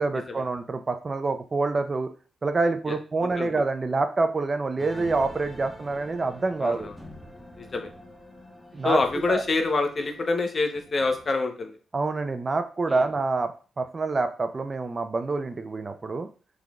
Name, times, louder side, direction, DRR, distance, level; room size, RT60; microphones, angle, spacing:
voice 1, 0.0-2.1 2.4-6.9 8.7-9.0 9.3-9.4 11.9-13.5 13.8-16.3, right 3 dB, 40° right, 8 dB, 0.5 m, -26 dB
sound 1, 4.8-11.4, left 1 dB, 10° left, 1.2 m, -46 dB
voice 2, 6.6-6.9 7.6-7.9 8.8-11.7 12.9-13.0, left 3 dB, 45° left, 5 dB, 0.8 m, -26 dB
4.9 x 3.7 x 2.4 m, 0.38 s
supercardioid pair, 60°, 0 cm